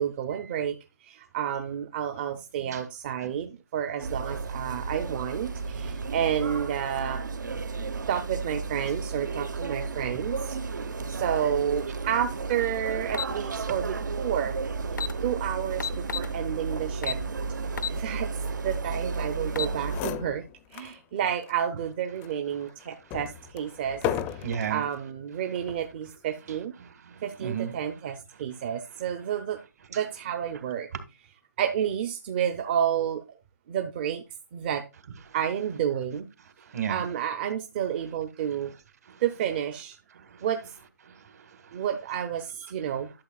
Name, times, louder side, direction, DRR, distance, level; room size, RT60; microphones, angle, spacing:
voice 1, 0.0-7.2 8.1-10.6 11.1-14.6 15.2-17.2 17.9-18.3 18.6-20.4 20.7-24.0 24.3-26.7 27.2-29.6 29.9-30.9 31.6-33.2 33.7-34.2 34.5-34.8 35.3-36.3 36.9-38.7 39.2-40.0 40.4-40.6 41.7-43.1, right 9 dB, 35° right, 0.6 m, -30 dB
sound 1, 4.0-20.0, right 4 dB, 85° right, 1.0 m, -33 dB
sound 2, 13.1-13.3 14.5-14.6 14.9-15.1 15.8-16.3 17.0-17.2 17.8-18.0 18.4-18.5 19.3-19.8, left 6 dB, 90° left, 0.7 m, -31 dB
sound 3, 19.5-19.6 19.8-21.0 21.4-21.5 22.2-24.8 25.6-25.9, left 9 dB, 15° left, 0.5 m, -34 dB
voice 2, 24.4-24.8 26.5-27.8 36.6-37.0 39.0-39.2 40.1-40.5 41.0-41.8, right 8 dB, 60° right, 1.6 m, -35 dB
11.5 x 7.3 x 2.3 m
hypercardioid pair, 155°, 10 cm